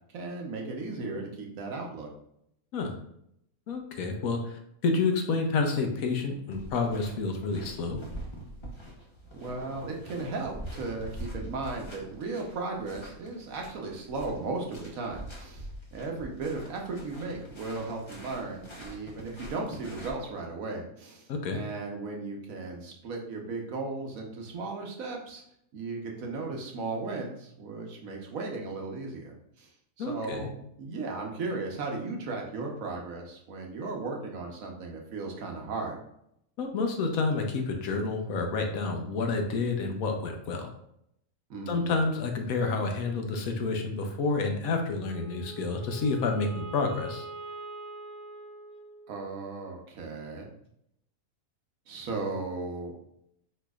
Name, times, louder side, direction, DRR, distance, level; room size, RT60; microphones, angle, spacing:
voice 1, 0.1-2.1 9.3-21.2 21.5-25.4 25.7-29.7 30.0-36.0 41.5-42.0 49.1-50.5 51.9-52.9, right 3 dB, 70° right, 1 dB, 1.3 m, -36 dB
voice 2, 3.7-8.0 21.3-21.6 30.0-30.5 36.6-40.7 41.7-47.3, left 3 dB, 80° left, 3 dB, 1.2 m, -29 dB
sound 1, 6.5-20.1, right 1 dB, 25° left, 0.7 m, -44 dB
Wind instrument woodwind instrument, 45.0-49.4, right 3 dB, 40° left, 1.2 m, -43 dB
4.8 x 4.4 x 2.3 m, 0.75 s
omnidirectional pair, 1.5 m